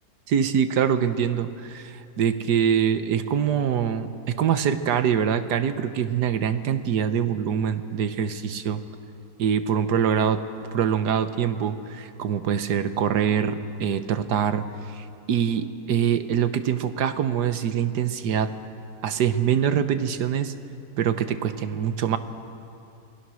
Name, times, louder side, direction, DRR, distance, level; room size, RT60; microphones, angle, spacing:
voice 1, 0.3-8.8 9.4-10.4 10.7-14.6 14.9-18.5 19.0-20.5 21.0-22.2, right 8 dB, 80° right, 10 dB, 1.5 m, -24 dB
28.0 x 19.5 x 6.3 m, 2.6 s
omnidirectional pair, 1.8 m